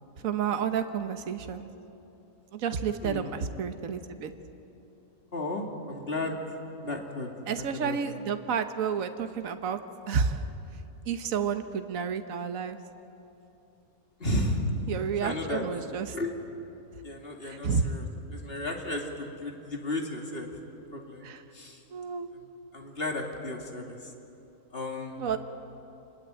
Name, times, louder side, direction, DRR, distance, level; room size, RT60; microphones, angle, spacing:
voice 1, 0.2-1.7 2.5-4.3 7.5-9.8 10.1-10.5 11.1-12.8 14.9-16.1 17.4-17.9 21.2-21.4 21.9-22.3 25.2-25.4, right 6 dB, 65° right, 8 dB, 1.5 m, -30 dB
voice 2, 3.0-3.3 5.3-6.4 6.8-7.3 7.6-8.0 14.2-14.7 15.2-15.6 16.1-16.3 17.0-20.5 20.9-21.3 21.5-21.8 22.7-24.0 24.7-25.2, left 1 dB, 40° left, 2 dB, 2.8 m, -33 dB
27.0 x 20.5 x 9.0 m, 2.9 s
omnidirectional pair, 1.5 m